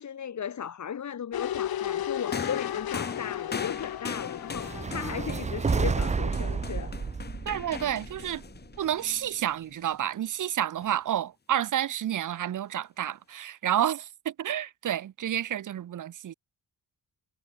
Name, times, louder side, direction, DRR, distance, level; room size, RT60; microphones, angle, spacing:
voice 1, 0.0-6.9, left 8 dB, 45° left, 1.9 m, -36 dB
sound 1, 1.3-6.3 6.6-6.7, left 11 dB, 60° left, 1.2 m, -34 dB
sound 2, 2.3-9.8 10.8-11.0, left 5 dB, 25° left, 1.0 m, -40 dB
sound 3, 4.5-8.8, right 5 dB, 20° right, 0.4 m, -30 dB
voice 2, 7.5-8.4 8.8-16.3, right 11 dB, 50° right, 0.7 m, -30 dB
wide cardioid pair, 180°, 41 cm